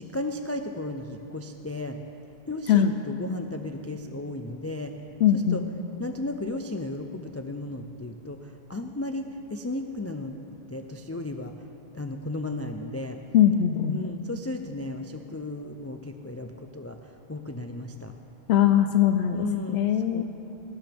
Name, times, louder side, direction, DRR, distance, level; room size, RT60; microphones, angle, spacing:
voice 1, 0.0-2.0 2.4-4.9 5.3-5.6 6.0-10.4 10.7-11.7 11.9-13.2 13.9-18.1 19.3-19.8 20.1-20.2, left 2 dB, 25° left, 5 dB, 0.3 m, -34 dB
voice 2, 5.2-5.6 13.3-14.0 18.5-19.4 19.7-20.2, left 10 dB, 90° left, 8 dB, 0.8 m, -21 dB
18.5 x 15.0 x 3.5 m, 3.0 s
omnidirectional pair, 1.1 m